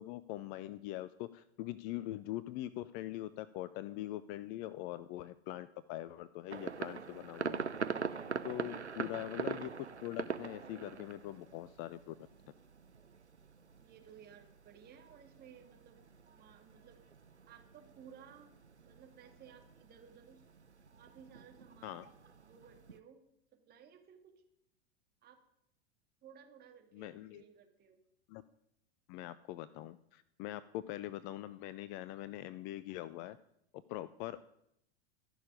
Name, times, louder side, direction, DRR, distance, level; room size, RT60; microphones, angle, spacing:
voice 1, 0.0-7.6 8.4-12.2 21.8-22.1 26.9-27.4 28.3-28.4 29.1-33.4 33.9-34.5, left 14 dB, 30° left, 17 dB, 0.5 m, -43 dB
sound 1, 6.5-23.0, right 5 dB, 90° right, 0.7 m, -44 dB
voice 2, 13.8-16.0 16.3-17.0 17.5-20.4 21.0-22.2 22.4-23.2 23.5-24.2 25.2-25.4 26.2-28.0 34.2-34.3, right 8 dB, 30° right, 4 dB, 2.4 m, -58 dB
14.0 x 6.6 x 9.8 m, 0.78 s
figure-of-eight pair, 90°, 33 cm